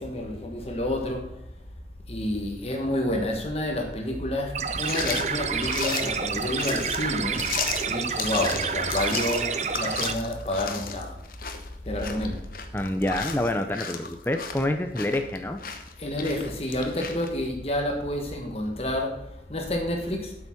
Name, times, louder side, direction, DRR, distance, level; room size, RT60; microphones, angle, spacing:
voice 1, 0.0-1.3 2.1-7.4 7.9-11.2 11.8-12.4 16.0-20.4, left 1 dB, 35° left, 1.3 m, -29 dB
sound 1, 4.5-10.1, right 6 dB, 40° right, 0.6 m, -29 dB
sound 2, 4.8-17.3, left 6 dB, 50° left, 1.0 m, -35 dB
voice 2, 12.7-15.6, left 1 dB, 10° left, 0.6 m, -27 dB
8.2 x 7.1 x 5.8 m
head